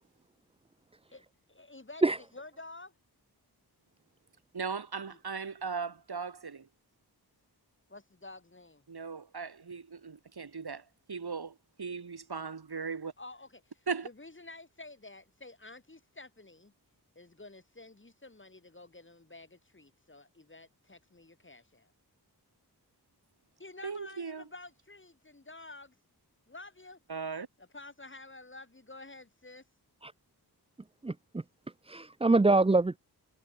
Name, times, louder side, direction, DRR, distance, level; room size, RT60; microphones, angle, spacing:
voice 1, 1.5-2.9 7.9-8.8 13.2-13.6 14.0-16.7 17.2-21.9 23.6-25.9 26.5-27.0 27.7-29.6, left 2 dB, 30° left, 4.0 m, -50 dB
voice 2, 4.5-6.7 8.9-13.1 13.9-14.1 23.8-24.5 27.1-27.5, right 5 dB, 75° right, 3.4 m, -38 dB
voice 3, 31.0-31.4 31.9-33.0, right 3 dB, 15° right, 0.5 m, -25 dB
wide cardioid pair, 95°, 39 cm